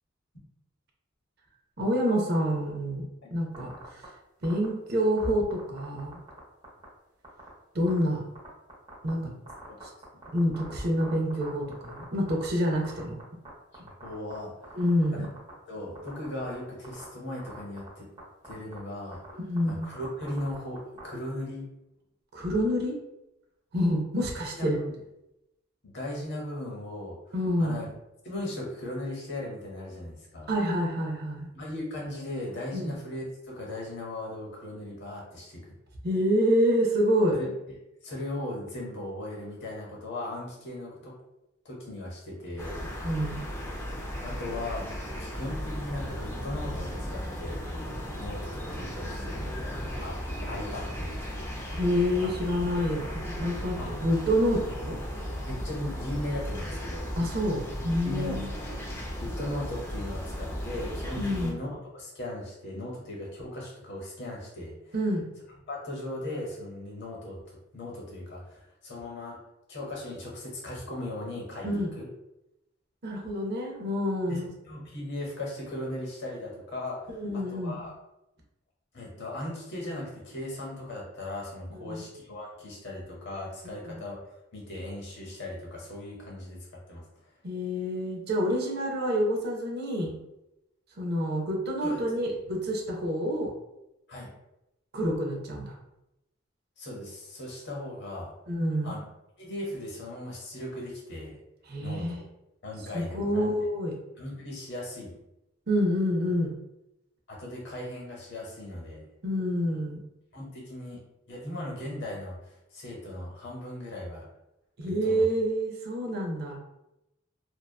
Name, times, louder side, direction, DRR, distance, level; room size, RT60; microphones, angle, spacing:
voice 1, 1.8-3.0 3.3-4.0 4.4-6.1 7.7-8.2 9.0-9.2 10.3-13.2 14.7-15.3 19.3-19.8 22.3-23.0 23.7-24.8 27.3-27.8 30.5-31.5 32.7-32.9 36.0-37.4 43.0-43.4 51.7-55.0 57.2-58.5 61.2-61.6 64.9-65.3 71.6-71.9 73.0-74.5 77.1-77.7 81.7-82.0 83.8-84.0 87.4-90.1 91.0-93.5 94.9-95.7 98.5-99.0 101.7-102.2 102.9-103.9 105.7-106.5 109.2-110.0 114.8-116.6, equal, 50° right, 0 dB, 0.5 m, -27 dB
sound 1, 3.5-4.0 4.4-4.6 5.2-6.4 6.6-6.8 7.2-7.5 7.9-8.0 8.3-9.1 9.5-12.5 12.7-13.5 13.7-14.4 14.6-15.5 15.9-16.5 16.8-17.0 17.4-17.9 18.2-18.3 18.4-18.8 19.1-21.0, right 3 dB, 20° right, 0.8 m, -45 dB
voice 2, 13.8-14.8 15.1-15.3 15.7-18.1 18.4-19.2 19.7-21.7 24.5-24.9 25.8-27.9 28.2-30.5 31.5-35.6 37.3-37.5 38.0-41.2 41.6-42.8 44.2-44.9 45.2-47.6 48.2-50.2 50.4-51.3 52.2-52.3 53.8-54.0 55.5-57.1 58.0-64.9 65.7-69.4 69.7-72.1 74.3-74.4 74.6-77.9 78.9-84.2 84.5-87.0 91.8-92.0 94.1-94.3 96.8-98.3 98.8-99.0 99.4-101.4 101.8-102.2 102.6-103.5 104.2-105.1 107.3-109.0 110.3-111.0 111.3-114.3 114.8-115.2, left 1 dB, 55° left, -2 dB, 0.8 m, -38 dB
sound 2, 42.6-61.5, equal, 10° left, 0.3 m, -36 dB
2.7 x 2.1 x 2.3 m, 0.89 s
head